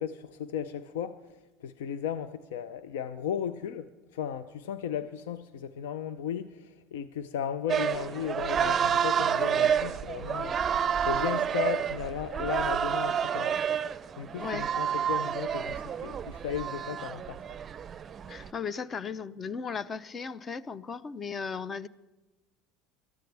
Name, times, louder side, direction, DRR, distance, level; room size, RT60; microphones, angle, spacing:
voice 1, 0.0-13.6 14.2-17.4, left 8 dB, 80° left, 0.5 m, -35 dB
sound 1, 7.7-18.5, right 8 dB, 35° right, 0.5 m, -29 dB
voice 2, 18.3-21.9, left 5 dB, 30° left, 0.6 m, -36 dB
22.0 x 13.5 x 3.4 m
hypercardioid pair, 85°, 0 cm